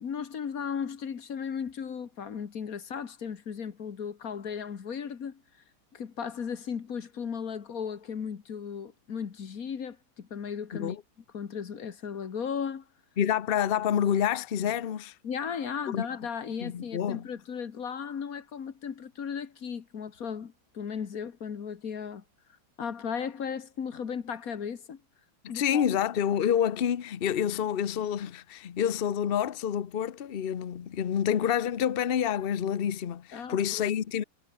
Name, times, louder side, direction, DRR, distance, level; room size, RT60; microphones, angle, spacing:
voice 1, 0.0-5.4 5.9-11.0 11.3-12.9 15.2-22.2 22.8-25.0 25.5-25.9 33.3-33.9, left 7 dB, 45° left, 1.8 m, -36 dB
voice 2, 13.2-15.1 15.9-16.0 16.6-17.3 25.4-34.2, left 9 dB, 80° left, 0.5 m, -28 dB
omnidirectional pair, 2.2 m